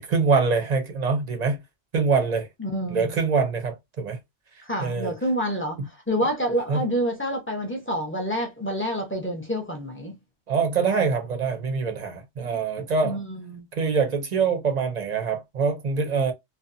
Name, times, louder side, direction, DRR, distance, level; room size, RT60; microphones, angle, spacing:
voice 1, 0.0-1.6 1.9-2.5 2.9-4.2 4.8-5.1 6.7-6.8 10.5-13.2 13.7-16.3, right 5 dB, 50° right, 0.6 m, -24 dB
voice 2, 2.6-3.2 4.6-10.2 12.4-12.6 13.0-13.7, equal, 15° left, 0.6 m, -28 dB
2.6 x 2.2 x 2.5 m
omnidirectional pair, 1.2 m